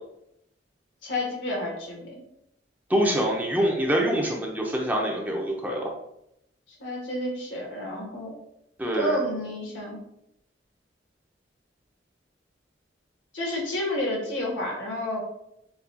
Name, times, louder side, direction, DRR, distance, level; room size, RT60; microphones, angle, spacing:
voice 1, 1.0-2.1 6.8-8.3 8.9-10.0 13.3-15.2, left 1 dB, 90° left, -1 dB, 1.3 m, -30 dB
voice 2, 2.9-5.9 8.8-9.2, equal, 10° right, -1 dB, 0.6 m, -25 dB
6.9 x 2.3 x 2.6 m, 0.80 s
head